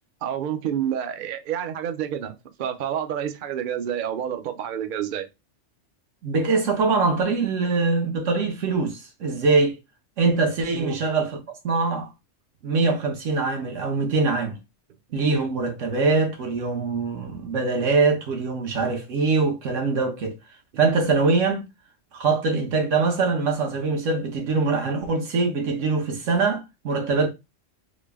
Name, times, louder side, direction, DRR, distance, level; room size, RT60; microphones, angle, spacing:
voice 1, 0.2-5.3 10.7-11.0, right 9 dB, 60° right, 0.5 m, -29 dB
voice 2, 6.2-9.8 10.2-12.1 12.6-14.6 15.1-20.4 20.8-21.7 22.1-27.3, right 4 dB, 80° right, 1.3 m, -23 dB
3.8 x 2.1 x 3.4 m
omnidirectional pair, 1.3 m